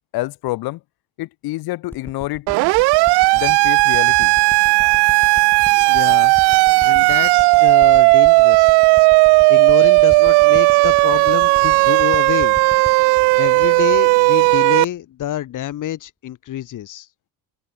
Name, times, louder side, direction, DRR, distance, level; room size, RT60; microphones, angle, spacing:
voice 1, 0.1-0.8 1.2-2.5 3.3-4.3, left 18 dB, 70° left, 1.4 m, -27 dB
sound 1, 1.9-14.7 15.3-15.4, left 1 dB, 5° left, 4.0 m, -39 dB
Siren, 2.5-14.8, right 27 dB, 90° right, 0.6 m, -14 dB
sound 2, 2.7-14.7, left 4 dB, 20° left, 7.2 m, -47 dB
voice 2, 5.9-6.3 6.8-8.7 9.5-12.6 13.4-17.1, left 12 dB, 50° left, 3.9 m, -27 dB
open air
cardioid pair, 140°, 38 cm